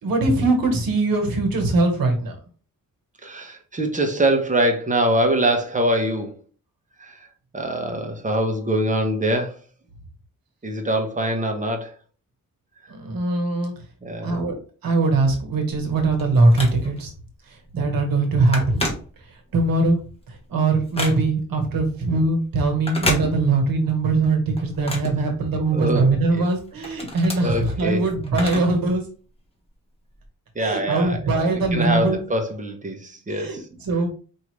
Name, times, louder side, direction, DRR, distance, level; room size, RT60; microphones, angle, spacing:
voice 1, 0.0-2.4 12.9-13.7 14.2-14.5 14.8-17.1 17.5-18.9 19.2-20.0 20.3-29.0 30.6-32.2 33.3-34.1, right 2 dB, 85° right, 1.3 m, -21 dB
voice 2, 3.2-6.4 7.0-7.3 7.5-9.6 10.6-12.0 14.0-14.3 25.7-26.1 26.3-26.4 27.4-28.0 30.5-33.6, right 1 dB, 20° right, 0.9 m, -24 dB
Telephone, 15.7-17.2 17.6-17.8 18.1-19.6 20.0-21.6 22.7-23.8 24.2-25.9 26.4-28.9 29.2-29.3 30.2-30.3, left 1 dB, 15° left, 1.3 m, -31 dB
4.8 x 2.7 x 3.1 m
cardioid pair, 110°, 34 cm